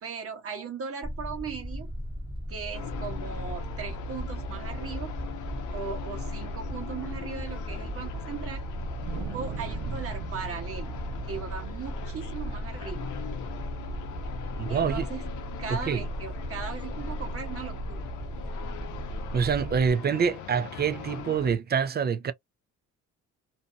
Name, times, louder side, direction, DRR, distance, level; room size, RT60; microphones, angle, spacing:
voice 1, 0.0-1.9 2.5-5.2 5.7-8.6 9.3-13.1 14.7-15.2 15.6-18.0, right 6 dB, 50° right, 1.1 m, -38 dB
sound 1, 1.0-19.9, equal, 15° right, 0.8 m, -37 dB
sound 2, 2.7-21.5, left 4 dB, 80° left, 0.6 m, -40 dB
Wind, 8.8-15.3, right 11 dB, 90° right, 0.5 m, -44 dB
voice 2, 14.6-15.1 15.9-16.0 19.3-22.3, right 6 dB, 35° right, 0.4 m, -26 dB
2.7 x 2.1 x 2.6 m
cardioid pair, 90°, 30 cm